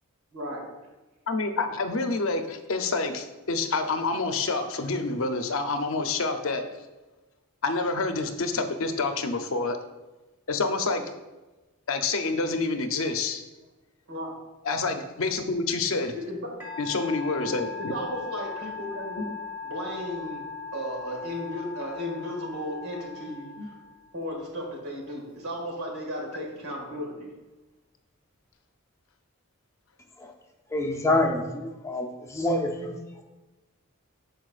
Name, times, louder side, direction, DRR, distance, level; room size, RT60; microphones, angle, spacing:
voice 1, 0.3-0.7 14.1-14.4 16.1-16.5 17.4-17.5 17.8-19.2 19.6-20.4 20.7-23.7 24.1-27.3, equal, 85° right, 0 dB, 1.9 m, -35 dB
voice 2, 1.3-6.6 7.6-9.8 10.5-11.0 11.9-13.4 14.6-16.1 16.8-17.9 19.2-19.3 23.6-23.7, left 3 dB, 65° left, 7 dB, 0.6 m, -28 dB
Musical instrument, 16.6-24.2, left 5 dB, 10° right, 1.5 m, -39 dB
voice 3, 30.7-33.0, left 1 dB, 15° left, 3 dB, 0.5 m, -27 dB
12.5 x 4.6 x 2.4 m, 1.1 s
head